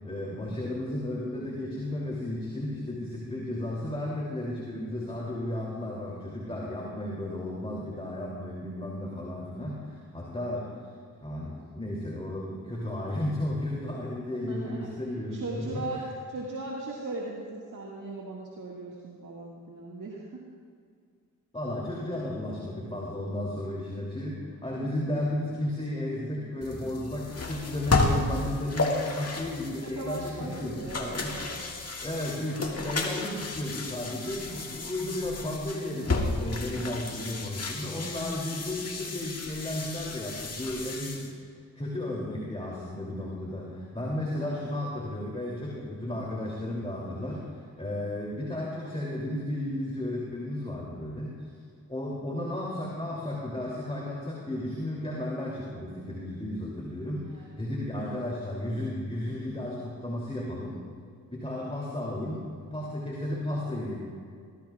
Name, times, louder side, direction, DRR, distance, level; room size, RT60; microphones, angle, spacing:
voice 1, 0.0-10.7 11.2-15.8 21.5-31.4 32.0-41.2 41.8-51.5 51.9-60.8 61.3-62.5 62.7-64.0, left 1 dB, 15° left, -4 dB, 2.8 m, -34 dB
voice 2, 14.3-14.9 15.3-16.0 16.3-20.4 29.8-31.6 37.8-38.2 44.4-44.7 57.3-57.5 58.0-58.1 62.2-62.4, right 2 dB, 60° right, -3 dB, 1.9 m, -39 dB
sound 1, 26.6-41.3, left 3 dB, 45° left, 1.9 m, -33 dB
18.5 x 15.0 x 2.4 m, 2.1 s
supercardioid pair, 40°, 35 cm